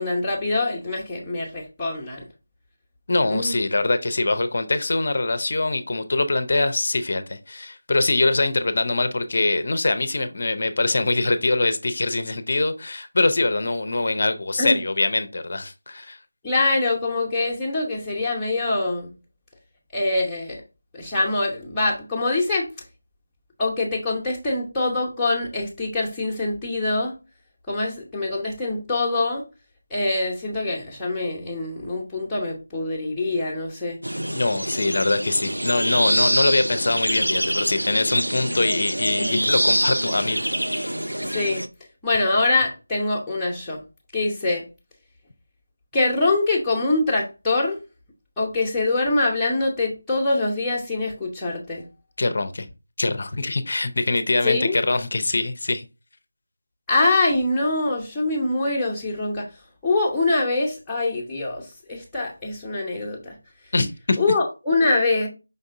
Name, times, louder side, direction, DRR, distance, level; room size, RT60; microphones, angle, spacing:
voice 1, 0.0-2.3 3.3-3.6 14.6-14.8 16.4-19.2 19.9-20.6 20.9-22.7 23.6-27.1 27.7-29.4 29.9-34.0 39.2-39.4 41.2-41.7 42.0-43.8 44.1-44.7 45.9-47.8 48.4-51.9 54.4-54.8 56.9-59.5 59.8-63.4 64.2-65.3, left 2 dB, 5° left, 0.9 m, -24 dB
voice 2, 3.1-16.2 34.3-40.4 52.2-52.7 53.0-55.9 63.7-64.2, left 2 dB, 45° left, 0.6 m, -23 dB
sound 1, 34.0-41.7, equal, 85° right, 0.5 m, -25 dB
5.2 x 3.5 x 2.6 m
figure-of-eight pair, 165°, 0 cm